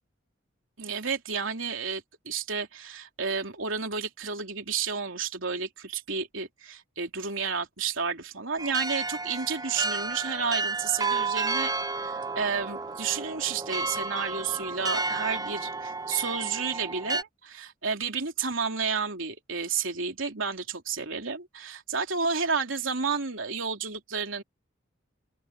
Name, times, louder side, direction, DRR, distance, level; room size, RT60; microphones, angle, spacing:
voice 1, 0.8-11.7 12.0-24.4, right 5 dB, 85° right, 3.2 m, -31 dB
sound 1, 8.6-17.2, right 3 dB, 20° right, 0.5 m, -31 dB
open air
head